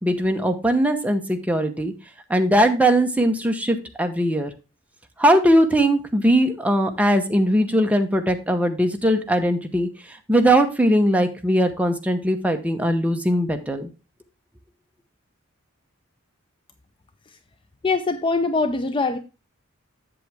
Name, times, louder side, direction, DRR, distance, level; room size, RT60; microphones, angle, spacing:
voice 1, 0.0-1.9 2.3-4.5 5.2-9.9 10.3-13.9, right 1 dB, 5° right, 5 dB, 0.9 m, -20 dB
voice 2, 17.8-19.2, left 3 dB, 25° left, 10 dB, 0.5 m, -22 dB
7.8 x 7.6 x 3.4 m, 0.29 s
head